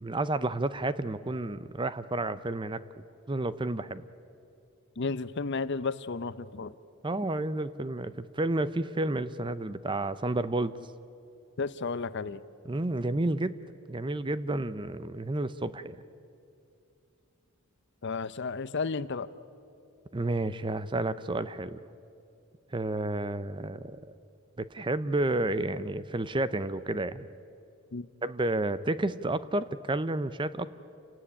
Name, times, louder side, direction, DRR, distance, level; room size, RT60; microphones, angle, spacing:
voice 1, 0.0-2.8 3.3-4.0 7.0-10.7 12.6-13.6 13.9-16.0 20.1-21.8 22.7-24.0 24.6-27.3 28.2-30.7, right 2 dB, 20° right, 14 dB, 0.6 m, -31 dB
voice 2, 5.0-6.7 11.6-12.4 18.0-19.3 27.9-28.1, left 4 dB, 55° left, 15 dB, 0.7 m, -33 dB
29.0 x 17.5 x 9.9 m, 2.6 s
head